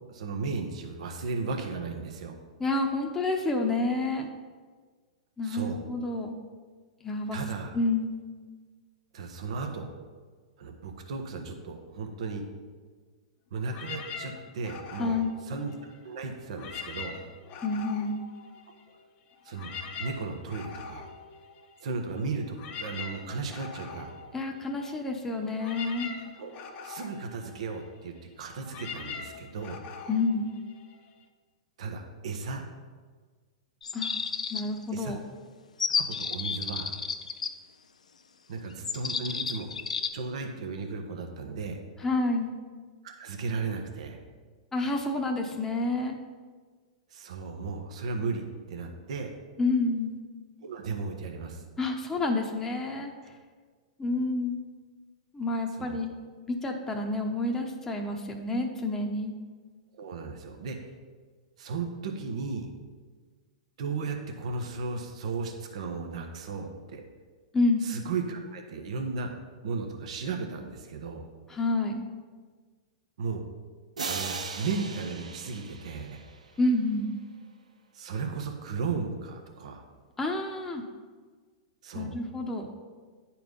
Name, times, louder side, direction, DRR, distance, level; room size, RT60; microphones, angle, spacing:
voice 1, 0.1-2.4 5.4-5.8 7.3-7.8 9.1-9.9 10.6-12.4 13.5-15.2 15.5-15.7 16.0-17.1 19.4-21.1 21.8-22.4 22.8-24.1 26.4-26.5 26.8-29.8 31.8-32.6 34.9-35.1 36.0-36.9 38.5-39.7 40.1-41.8 43.0-44.2 47.1-49.3 50.6-51.6 55.8-56.1 59.9-60.9 61.6-62.7 63.8-67.0 67.8-69.3 69.6-71.3 73.2-73.4 74.0-76.2 77.9-79.8 81.8-82.1, right 4 dB, 65° right, 3 dB, 1.2 m, -35 dB
voice 2, 2.6-4.3 5.4-6.4 7.0-7.4 7.7-8.2 15.0-15.4 17.6-18.2 24.3-26.1 30.1-30.5 33.9-34.2 34.5-35.2 42.0-42.5 44.7-46.2 49.6-50.2 51.8-53.1 54.0-54.6 55.3-56.1 56.5-59.3 67.5-67.9 71.5-72.0 76.6-77.1 80.2-80.8 81.9-82.7, left 2 dB, 10° left, 1 dB, 1.0 m, -29 dB
sound 1, 13.7-16.1 16.5-19.0 19.3-31.2, left 6 dB, 40° left, 0.9 m, -43 dB
sound 2, 33.8-34.8 35.8-37.5 38.8-40.1, left 6 dB, 90° left, 0.5 m, -31 dB
sound 3, 74.0-76.6, right 4 dB, 90° right, 0.7 m, -37 dB
9.9 x 4.4 x 5.3 m, 1.5 s
hypercardioid pair, 115°, 4 cm